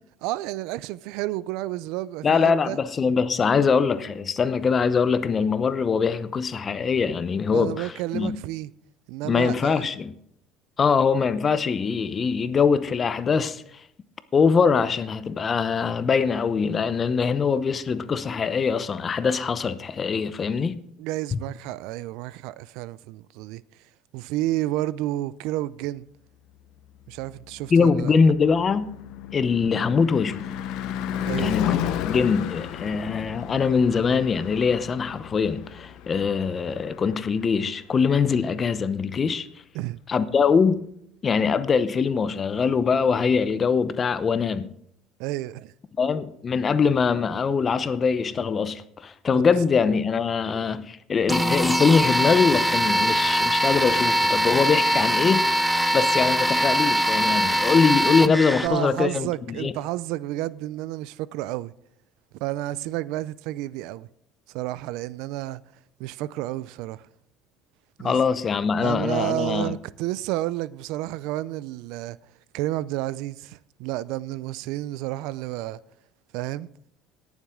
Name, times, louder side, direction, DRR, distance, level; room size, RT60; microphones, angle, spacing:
voice 1, 0.2-2.8 7.5-8.7 9.1-9.9 21.0-23.6 24.1-26.1 27.1-28.1 31.2-31.6 39.7-40.0 45.2-45.7 58.6-61.7 62.4-64.1 64.5-65.6 66.0-67.0 68.0-68.1 68.8-72.2 72.5-75.8 76.3-76.7, right 16 dB, 75° right, 0.4 m, -30 dB
voice 2, 2.2-8.4 9.2-10.1 10.8-13.8 14.3-20.8 21.3-21.4 27.7-28.9 29.3-30.5 31.4-39.5 40.1-40.8 41.2-44.7 46.0-55.5 55.9-59.7 68.0-69.8, left 5 dB, 30° left, 0.7 m, -23 dB
Car passing by / Truck / Engine, 27.5-37.8, left 10 dB, 70° left, 0.9 m, -33 dB
sound 1, 51.3-58.7, right 1 dB, 5° right, 0.6 m, -22 dB
19.5 x 7.2 x 3.7 m
cardioid pair, 115°, 0 cm